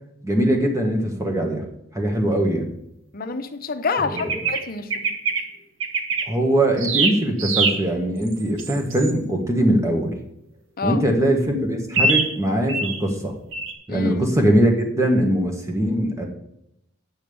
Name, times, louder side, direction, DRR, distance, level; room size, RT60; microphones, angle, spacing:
voice 1, 0.2-1.6 1.9-2.7 4.1-4.3 6.3-10.1 10.8-13.3 13.9-16.3, right 1 dB, 15° right, 2 dB, 1.7 m, -21 dB
voice 2, 3.1-4.9 10.8-11.0 13.9-14.3, left 4 dB, 45° left, 8 dB, 0.9 m, -27 dB
sound 1, 4.2-4.6 4.9-5.4 5.8-6.2 6.8-7.8 8.3-9.1 11.9-12.3 12.7-13.0 13.5-13.7, right 4 dB, 70° right, 1.5 m, -23 dB
8.9 x 5.9 x 7.0 m, 0.79 s
head